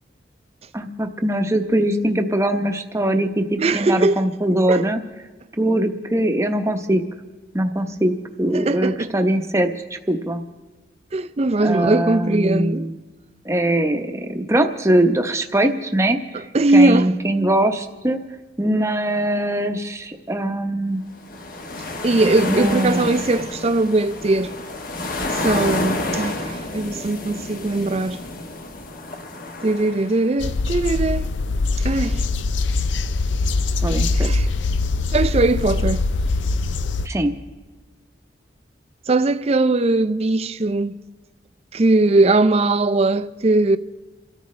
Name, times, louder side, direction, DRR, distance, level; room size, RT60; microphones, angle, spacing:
voice 1, 0.7-5.0 5.6-7.0 7.5-10.4 11.6-12.9 13.4-16.2 16.7-18.2 18.6-21.0 22.5-23.1 33.8-34.3 37.0-37.3, right 1 dB, 15° right, 0.8 m, -21 dB
voice 2, 3.6-4.2 4.7-4.8 8.5-9.1 11.1-12.9 16.3-17.1 22.0-24.5 25.3-28.2 29.6-31.3 31.8-32.2 34.1-34.5 35.1-36.0 39.1-41.0 41.7-43.8, right 2 dB, 35° right, 0.5 m, -20 dB
sound 1, 21.2-30.4, left 2 dB, 50° left, 1.1 m, -29 dB
sound 2, 30.4-37.1, left 3 dB, 90° left, 0.5 m, -22 dB
28.5 x 13.5 x 3.2 m
head